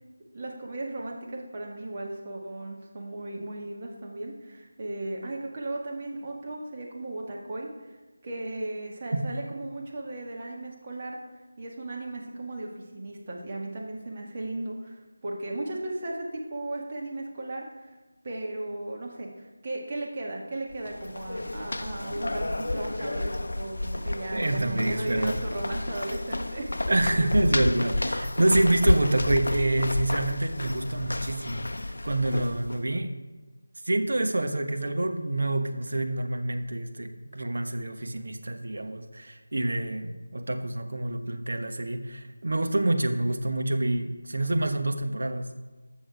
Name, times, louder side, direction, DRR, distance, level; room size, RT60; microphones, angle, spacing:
voice 1, 0.3-7.7 8.2-11.2 11.6-18.0 18.2-26.7, right 2 dB, 30° right, -2 dB, 1.8 m, -36 dB
sound 1, 20.7-32.8, left 2 dB, 65° left, 0.5 m, -30 dB
voice 2, 24.3-25.4 26.9-33.1 33.8-45.5, right 1 dB, 60° right, 6 dB, 1.1 m, -27 dB
14.5 x 6.3 x 4.8 m, 1.2 s
figure-of-eight pair, 165°, 0 cm